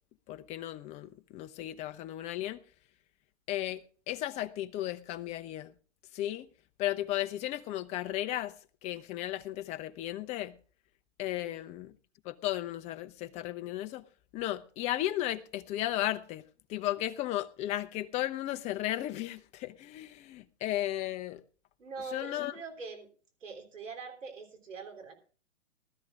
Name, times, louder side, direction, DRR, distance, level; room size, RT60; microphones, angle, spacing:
voice 1, 0.3-2.6 3.5-5.7 6.1-6.5 6.8-8.5 8.8-10.6 11.2-11.9 12.2-14.0 14.3-16.4 16.7-21.4 22.1-22.5, left 14 dB, 20° left, 0.5 m, -35 dB
voice 2, 21.8-23.1 23.4-25.1, right 4 dB, 90° right, 3.7 m, -43 dB
19.5 x 13.0 x 2.4 m
hypercardioid pair, 130°, 36 cm